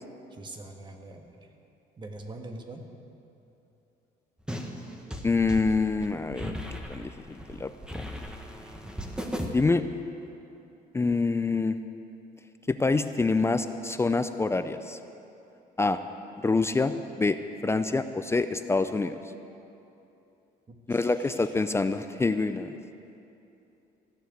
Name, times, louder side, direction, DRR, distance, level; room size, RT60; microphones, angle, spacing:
voice 1, 0.3-1.4 2.0-2.8 8.6-8.8 20.7-21.5, right 2 dB, 25° right, 4 dB, 1.5 m, -44 dB
sound 1, 4.5-9.5, equal, 5° right, 1.3 m, -37 dB
voice 2, 5.2-6.5 6.9-8.1 9.5-9.8 10.9-11.8 12.7-15.0 15.8-16.0 16.4-19.2 20.9-22.7, left 3 dB, 15° left, 10 dB, 0.4 m, -26 dB
15.0 x 6.9 x 9.3 m, 2.9 s
cardioid pair, 110°, 17 cm